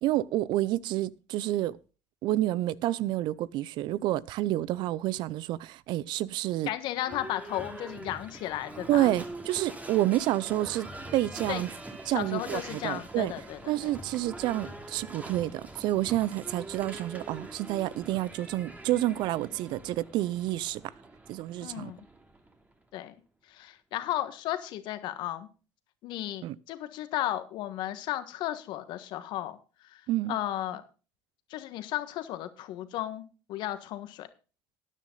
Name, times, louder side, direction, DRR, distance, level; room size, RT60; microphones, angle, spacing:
voice 1, 0.0-1.8 2.2-6.7 8.9-11.7 12.1-13.3 13.7-20.9 21.3-21.9 26.4-26.6 30.1-30.4, right 15 dB, 65° right, 0.6 m, -29 dB
voice 2, 6.7-9.1 11.5-11.6 12.1-13.9 21.6-22.0 22.9-25.5 26.0-30.8 31.5-34.3, left 13 dB, 65° left, 1.4 m, -35 dB
Livestock farm animals working animals / Bell, 6.9-22.8, right 1 dB, 20° right, 2.7 m, -44 dB
13.0 x 9.9 x 3.9 m
hypercardioid pair, 65°, 8 cm